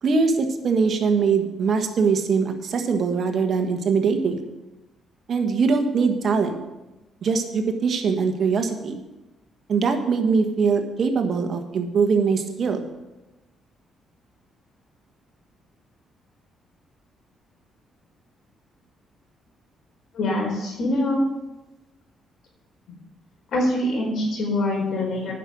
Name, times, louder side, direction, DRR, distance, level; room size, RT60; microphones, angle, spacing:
voice 1, 0.0-4.4 5.3-6.6 7.2-9.0 9.7-12.8, right 5 dB, 55° right, 6 dB, 1.5 m, -22 dB
voice 2, 20.1-21.2 23.5-25.3, left 1 dB, 70° left, 0 dB, 4.4 m, -24 dB
10.0 x 6.2 x 8.6 m, 1.0 s
cardioid pair, 90°, 0 cm